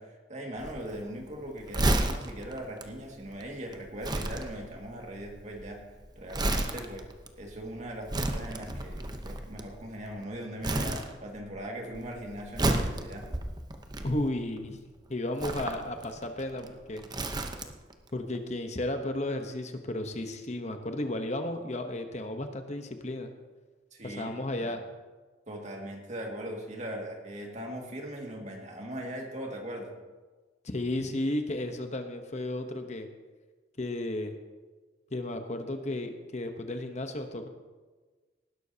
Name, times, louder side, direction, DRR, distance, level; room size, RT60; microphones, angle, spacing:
voice 1, 0.0-5.8 6.2-7.1 7.4-13.3 23.9-24.7 25.5-29.9, right 1 dB, 45° right, 1 dB, 2.1 m, -40 dB
Crumpling crinkling, 0.6-10.2 10.6-11.6 11.8-14.6 15.3-17.9 18.2-18.4, right 1 dB, 25° right, 0.8 m, -32 dB
voice 2, 14.0-14.8 15.1-17.0 18.1-23.3 24.0-24.8 30.6-33.1 33.8-34.4 35.1-37.5, left 1 dB, 40° left, 6 dB, 1.0 m, -33 dB
18.5 x 11.5 x 2.8 m, 1.3 s
head